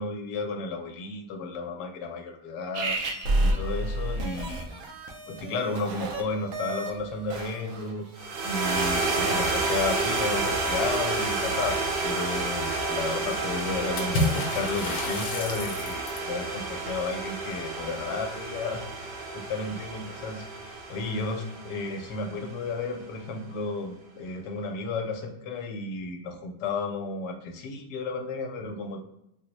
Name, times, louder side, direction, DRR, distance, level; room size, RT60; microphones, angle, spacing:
voice 1, 0.0-3.0 3.4-4.8 5.3-8.1 8.4-11.8 12.0-19.1 19.3-29.0, left 3 dB, 90° left, 4 dB, 1.2 m, -33 dB
sound 1, 2.7-8.2, right 1 dB, 65° right, 0.9 m, -31 dB
sound 2, 8.2-22.6, right 3 dB, 85° right, 1.3 m, -30 dB
Water / Splash splatter, 14.0-16.3, left 1 dB, 70° left, 1.1 m, -30 dB
3.8 x 2.1 x 3.0 m, 0.82 s
omnidirectional pair, 1.8 m